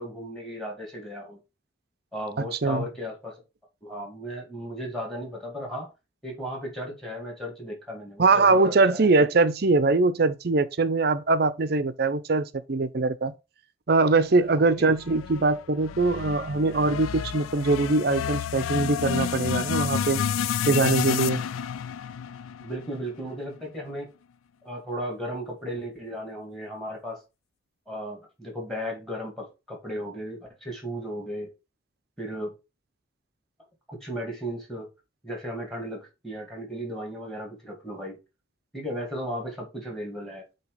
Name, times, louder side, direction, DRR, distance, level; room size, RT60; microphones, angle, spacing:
voice 1, 0.0-1.4 2.1-3.3 3.8-5.9 6.2-9.1 14.6-14.9 22.6-24.1 24.6-27.2 27.9-31.5 32.2-32.5 33.9-34.9 35.2-38.2 38.7-40.4, equal, ahead, 2.3 m, -35 dB
voice 2, 2.4-2.9 8.2-13.3 13.9-20.2 20.6-21.4, right 3 dB, 50° right, 0.6 m, -22 dB
sound 1, 15.0-23.3, left 8 dB, 85° left, 0.3 m, -30 dB
8.1 x 2.9 x 5.0 m
head